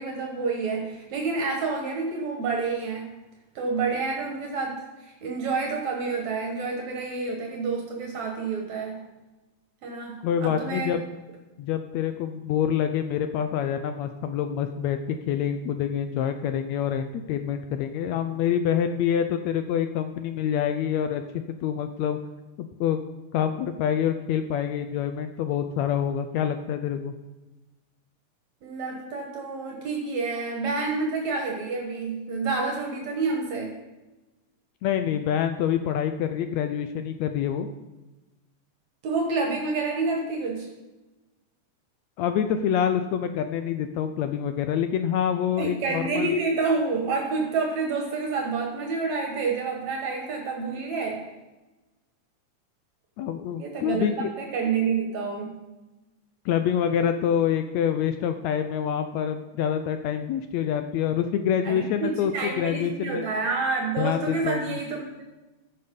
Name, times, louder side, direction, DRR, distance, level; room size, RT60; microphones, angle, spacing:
voice 1, 0.0-3.1 3.6-9.0 9.8-10.9 28.6-33.8 39.0-40.7 45.6-51.3 53.6-55.6 61.6-65.2, right 4 dB, 65° right, 1 dB, 2.6 m, -28 dB
voice 2, 10.2-11.0 11.6-15.0 15.3-21.2 21.6-22.2 22.6-23.0 23.3-27.1 34.8-37.7 42.2-46.3 53.2-54.3 56.5-63.3 64.0-64.8, left 9 dB, 80° left, 8 dB, 1.8 m, -26 dB
15.0 x 6.7 x 5.3 m, 1.1 s
omnidirectional pair, 3.5 m